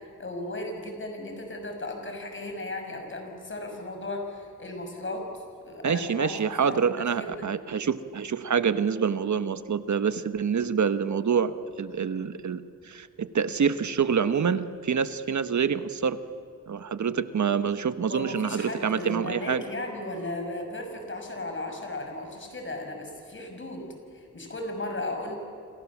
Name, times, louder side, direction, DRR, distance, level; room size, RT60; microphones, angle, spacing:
voice 1, 0.2-5.3 5.6-6.3 6.6-6.8 7.2-7.5 18.1-23.8 24.1-25.3, left 2 dB, 35° left, 4 dB, 5.8 m, -35 dB
voice 2, 5.8-16.2 16.7-19.6, right 6 dB, 60° right, 12 dB, 1.2 m, -26 dB
29.5 x 27.0 x 7.3 m, 2.4 s
wide cardioid pair, 120°, 32 cm